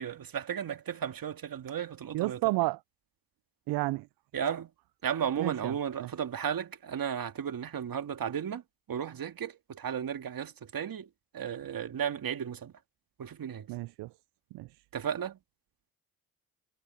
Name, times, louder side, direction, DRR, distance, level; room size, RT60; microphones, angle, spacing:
voice 1, 0.0-2.4 4.3-4.7 5.0-8.6 8.9-11.1 11.3-12.7 13.2-13.7 14.9-15.4, right 8 dB, 60° right, 2.4 m, -34 dB
voice 2, 2.1-2.8 3.7-4.1 5.4-5.7 6.0-6.1 13.7-14.1 14.5-14.7, right 19 dB, 80° right, 0.6 m, -31 dB
supercardioid pair, 50°, 39 cm